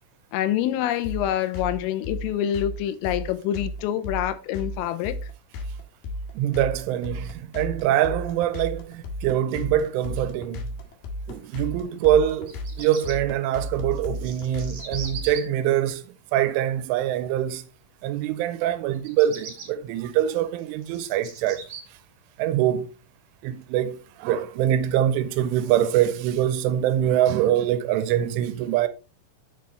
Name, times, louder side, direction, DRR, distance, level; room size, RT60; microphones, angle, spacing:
voice 1, 0.3-5.2, left 11 dB, 85° left, 3.4 m, -26 dB
sound 1, 1.0-15.3, left 1 dB, 60° left, 3.0 m, -33 dB
voice 2, 6.3-10.6 11.3-16.0 16.3-17.6 18.0-22.0 22.4-22.9 23.4-28.9, right 11 dB, 80° right, 3.0 m, -24 dB
Bird vocalization bird call bird song, 12.3-13.1 13.9-15.4 18.9-19.7 20.3-21.8, right 6 dB, 45° right, 2.4 m, -39 dB
7.7 x 6.7 x 4.3 m
omnidirectional pair, 5.8 m